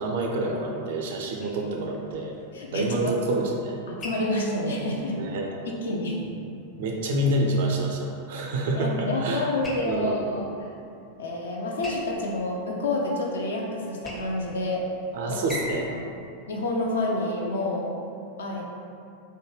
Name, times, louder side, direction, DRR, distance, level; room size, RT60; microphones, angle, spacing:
voice 1, 0.0-2.3 2.7-3.8 5.2-5.6 6.8-9.5 9.8-10.3 15.1-15.9, right 1 dB, 55° right, 0 dB, 0.4 m, -27 dB
sound 1, 1.4-17.5, left 1 dB, 15° left, 0.5 m, -44 dB
voice 2, 2.5-3.1 3.9-5.2 5.6-6.3 8.7-10.5 11.2-14.8 15.3-15.4 16.5-17.9 18.4-18.7, left 2 dB, 65° left, -1 dB, 0.5 m, -28 dB
3.2 x 2.2 x 3.2 m, 2.5 s
figure-of-eight pair, 90°, 0 cm